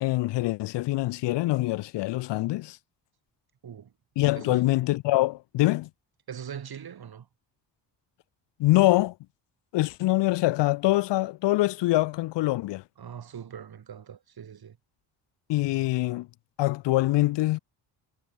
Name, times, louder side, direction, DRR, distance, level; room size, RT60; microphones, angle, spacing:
voice 1, 0.0-2.8 4.2-5.9 8.6-9.2 9.7-12.8 15.5-16.3 16.6-17.6, left 18 dB, 65° left, 0.6 m, -24 dB
voice 2, 6.3-7.3 13.0-14.8, right 8 dB, 50° right, 3.5 m, -41 dB
supercardioid pair, 75°, 47 cm